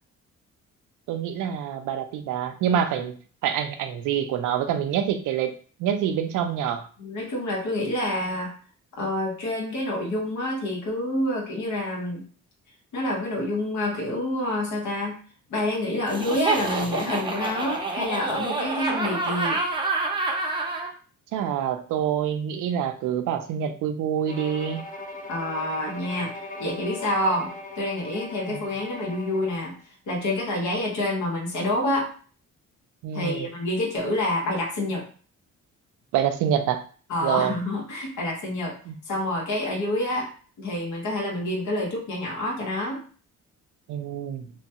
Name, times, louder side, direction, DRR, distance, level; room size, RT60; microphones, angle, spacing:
voice 1, 1.1-3.1 3.4-5.5 5.8-6.9 21.3-24.8 28.5-28.6 33.0-33.5 36.1-36.8 37.2-37.5 38.9-39.0 43.9-44.5, right 9 dB, 80° right, 8 dB, 0.5 m, -26 dB
voice 2, 7.0-8.5 9.0-12.2 12.9-15.2 15.5-19.6 25.3-26.3 26.6-29.7 30.1-32.1 33.1-35.1 37.1-38.7 39.1-40.3 40.6-43.0, left 1 dB, 75° left, -2 dB, 1.1 m, -27 dB
Laughter, 16.1-20.9, right 3 dB, 15° right, 0.6 m, -27 dB
Bowed string instrument, 24.3-29.6, left 2 dB, 30° left, 0.5 m, -39 dB
3.0 x 2.2 x 2.8 m, 0.41 s
cardioid pair, 90°, 30 cm